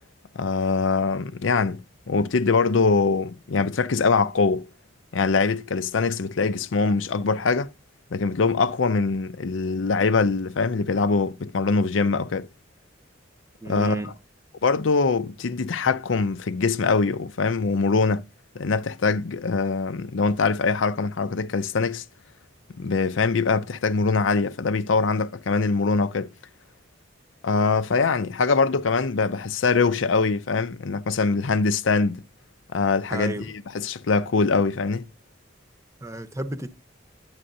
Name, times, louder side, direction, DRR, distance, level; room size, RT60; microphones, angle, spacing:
voice 1, 0.4-4.7 5.1-7.7 8.1-12.5 13.7-14.0 14.6-18.2 18.5-22.0 22.8-26.3 27.4-32.2 32.7-35.1, left 4 dB, 85° left, 0.6 m, -23 dB
voice 2, 13.6-14.2 33.1-33.5 36.0-36.7, right 2 dB, 15° right, 0.8 m, -32 dB
11.0 x 8.7 x 2.6 m
head